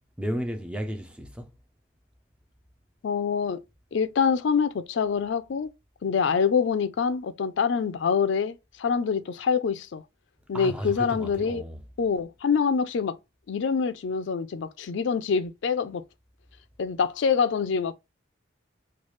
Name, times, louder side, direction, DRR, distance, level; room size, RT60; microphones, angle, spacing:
voice 1, 0.2-1.5 10.5-11.8, equal, 5° right, 0.4 m, -33 dB
voice 2, 3.0-3.6 3.9-5.7 6.0-10.0 10.5-11.6 12.0-13.2 13.5-16.0 16.8-17.9, left 6 dB, 70° left, 0.4 m, -25 dB
3.2 x 2.3 x 3.0 m
head